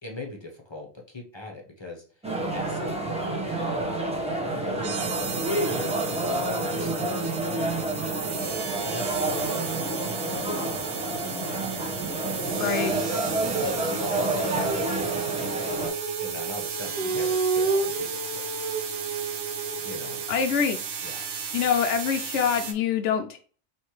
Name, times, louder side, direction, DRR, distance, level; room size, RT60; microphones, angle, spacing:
voice 1, 0.0-2.3 2.5-3.4 4.6-5.8 6.2-7.7 8.4-11.6 12.2-12.5 13.4-13.8 14.3-15.0 16.2-18.4 19.8-20.3 21.0-21.2, left 2 dB, 25° left, 0 dB, 0.9 m, -41 dB
sound 1, 2.2-15.9, right 2 dB, 5° right, 0.9 m, -29 dB
sound 2, 4.8-22.7, right 7 dB, 65° right, 1.0 m, -35 dB
voice 2, 12.6-12.9 20.3-20.8 21.5-23.4, left 7 dB, 70° left, 5 dB, 0.8 m, -25 dB
Female singing, 14.6-20.4, right 4 dB, 35° right, 0.7 m, -30 dB
4.5 x 3.2 x 3.1 m, 0.41 s
omnidirectional pair, 1.4 m